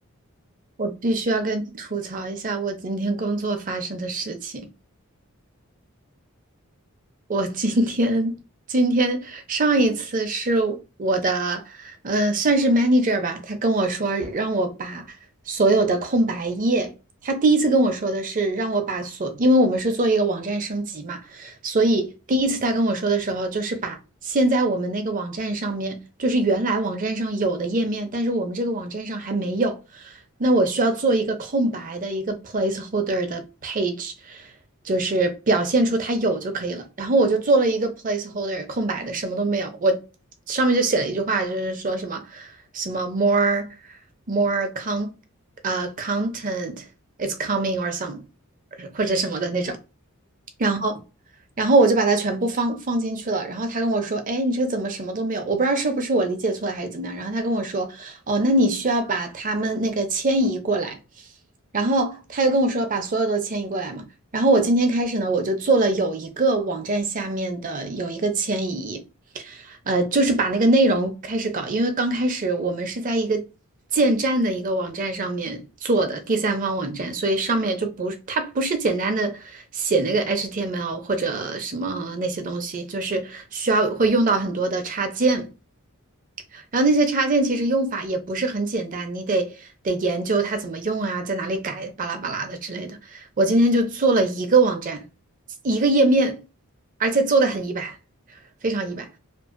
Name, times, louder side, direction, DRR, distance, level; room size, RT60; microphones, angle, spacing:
voice 1, 0.8-4.7 7.3-8.4 8.7-15.1 15.5-16.9 17.2-24.0 24.2-30.0 30.4-34.4 34.8-40.0 40.5-42.5 42.7-43.7 44.3-45.1 45.6-46.8 47.2-48.2 48.8-49.8 50.6-50.9 51.6-61.0 61.7-64.1 64.3-69.0 69.3-73.4 73.9-85.5 86.5-89.5 89.8-95.0 95.6-96.4 97.0-98.0 98.6-99.1, right 2 dB, 40° right, 0.5 m, -23 dB
2.5 x 2.4 x 2.5 m
head